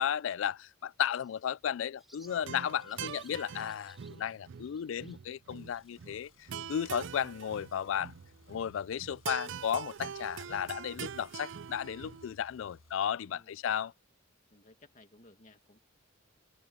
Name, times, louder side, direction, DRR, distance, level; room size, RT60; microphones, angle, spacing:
voice 1, 0.0-8.1 8.5-13.9, left 9 dB, 65° left, 0.3 m, -34 dB
Bird, 0.7-9.6, equal, ahead, 3.7 m, -66 dB
sound 1, 2.3-12.3, right 7 dB, 60° right, 0.4 m, -44 dB
sound 2, 5.5-12.9, left 1 dB, 85° left, 7.2 m, -63 dB
voice 2, 13.2-13.6 14.5-15.8, left 2 dB, 40° left, 2.1 m, -59 dB
open air
head